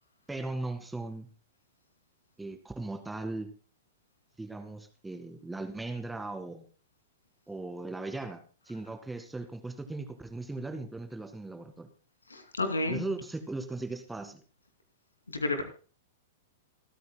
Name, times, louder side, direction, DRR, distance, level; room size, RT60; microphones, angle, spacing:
voice 1, 0.3-1.3 2.4-3.5 4.4-6.7 7.5-8.4 8.7-11.9 12.9-14.4, right 2 dB, 5° right, 7 dB, 1.9 m, -38 dB
voice 2, 12.3-13.0 15.3-15.6, left 2 dB, 85° left, 7 dB, 2.7 m, -30 dB
26.5 x 9.3 x 2.2 m, 0.38 s
figure-of-eight pair, 100°, 0 cm